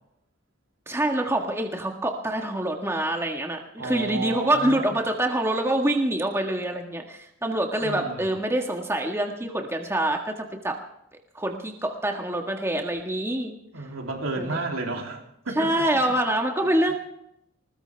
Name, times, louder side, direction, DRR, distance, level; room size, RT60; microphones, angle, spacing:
voice 1, 0.9-10.8 11.3-13.6 14.4-14.6 15.5-16.9, right 1 dB, 10° right, 2 dB, 1.7 m, -26 dB
voice 2, 3.8-5.0 7.8-8.3 13.7-15.9, right 2 dB, 80° right, 1 dB, 3.2 m, -32 dB
20.5 x 20.5 x 3.5 m, 0.76 s
head